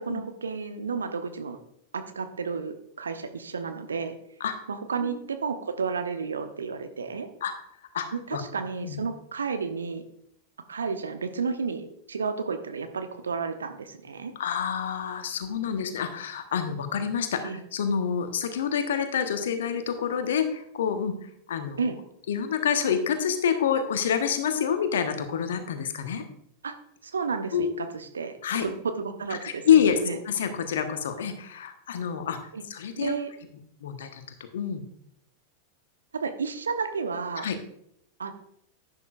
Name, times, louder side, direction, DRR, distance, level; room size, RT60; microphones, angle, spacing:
voice 1, 0.0-1.6 1.9-4.2 4.7-7.3 8.1-10.0 10.7-14.3 17.4-17.6 21.8-22.0 26.6-26.8 27.0-28.4 28.6-30.2 32.5-32.6 33.0-33.3 36.1-37.5 38.2-38.3, right 5 dB, 70° right, 7 dB, 1.0 m, -32 dB
voice 2, 7.9-8.4 8.8-9.0 14.3-17.4 17.7-21.8 22.3-26.2 27.5-27.7 28.4-28.7 29.3-33.1 33.8-34.8 37.4-37.6, left 8 dB, 60° left, 8 dB, 1.2 m, -27 dB
11.0 x 9.9 x 2.5 m, 0.72 s
figure-of-eight pair, 90°, 0 cm